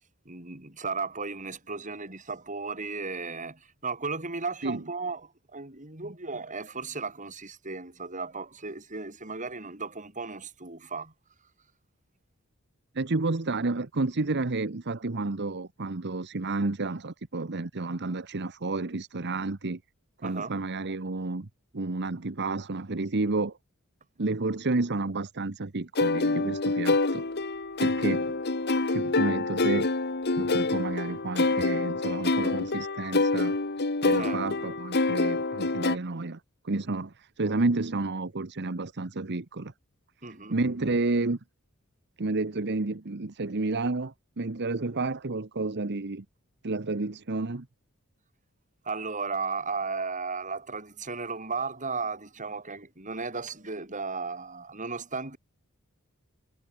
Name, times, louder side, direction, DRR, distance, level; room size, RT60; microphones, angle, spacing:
voice 1, 0.2-11.1 20.2-20.5 34.1-34.4 40.2-40.5 48.8-55.4, right 4 dB, 35° right, 6.9 m, -35 dB
voice 2, 12.9-19.8 20.2-21.5 21.7-23.6 24.2-27.2 27.8-28.4 28.9-29.9 30.4-33.6 34.0-36.4 36.6-39.7 40.5-41.4 42.2-46.2 46.6-47.7, right 3 dB, 55° right, 1.1 m, -30 dB
sound 1, 26.0-36.0, left 3 dB, 50° left, 1.6 m, -26 dB
head